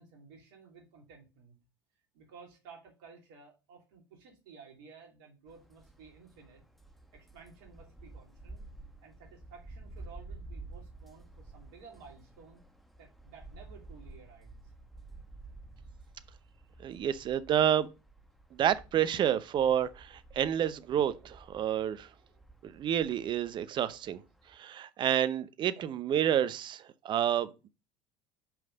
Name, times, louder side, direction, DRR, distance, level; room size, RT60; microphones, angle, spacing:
voice 1, 0.0-1.6 2.1-6.6 7.1-8.6 9.0-12.6 13.0-14.7, right 5 dB, 70° right, 3.0 m, -54 dB
sound 1, 5.5-24.6, right 2 dB, ahead, 1.3 m, -52 dB
voice 2, 16.8-17.9 18.5-22.1 22.6-24.2 24.5-27.7, right 10 dB, 40° right, 0.7 m, -29 dB
5.7 x 5.3 x 5.1 m
hypercardioid pair, 70°, 12 cm